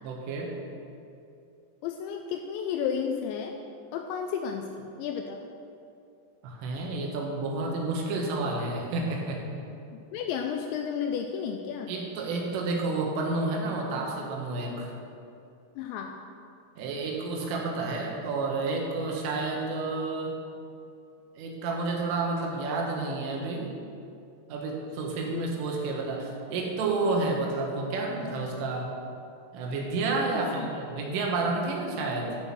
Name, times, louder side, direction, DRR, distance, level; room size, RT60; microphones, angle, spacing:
voice 1, 0.0-0.6 6.4-9.4 11.9-14.9 16.8-20.4 21.4-23.7 24.5-28.9 29.5-32.4, right 3 dB, 85° right, -1 dB, 4.0 m, -30 dB
voice 2, 1.8-3.6 3.9-5.4 9.9-11.9 15.8-16.2 25.3-25.5 30.4-30.7, left 7 dB, 85° left, 4 dB, 2.6 m, -32 dB
13.5 x 6.3 x 6.1 m, 2.6 s
omnidirectional pair, 5.6 m